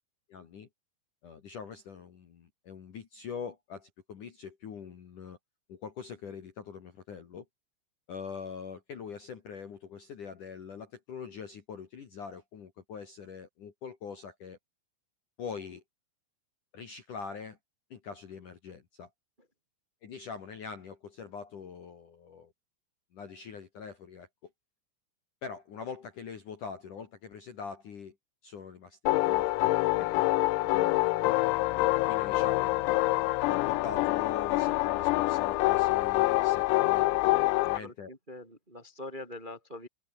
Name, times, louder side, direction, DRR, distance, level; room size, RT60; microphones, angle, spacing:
voice 1, 0.3-0.7 1.2-5.4 5.7-7.4 8.1-14.6 15.4-15.8 16.7-17.6 17.9-19.1 20.0-22.5 23.1-24.5 25.4-28.2 28.4-29.7 30.0-30.3 30.6-31.1 32.1-37.3 37.6-38.1, left 6 dB, 50° left, 2.9 m, -43 dB
sound 1, 29.1-37.8, left 20 dB, 85° left, 3.7 m, -26 dB
voice 2, 37.7-39.9, left 1 dB, 10° right, 2.7 m, -44 dB
omnidirectional pair, 6.0 m